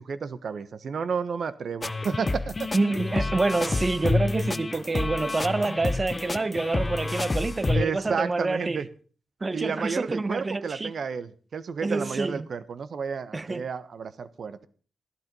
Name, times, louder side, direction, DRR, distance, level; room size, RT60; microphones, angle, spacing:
voice 1, 0.0-2.7 7.7-8.9 9.5-14.7, right 6 dB, 60° right, 1.3 m, -31 dB
sound 1, 1.8-7.9, left 3 dB, 35° left, 0.9 m, -28 dB
voice 2, 2.7-8.8 9.4-10.9 11.8-12.5 13.3-13.7, right 3 dB, 35° right, 0.8 m, -27 dB
16.0 x 12.0 x 5.5 m
hypercardioid pair, 40°, 0 cm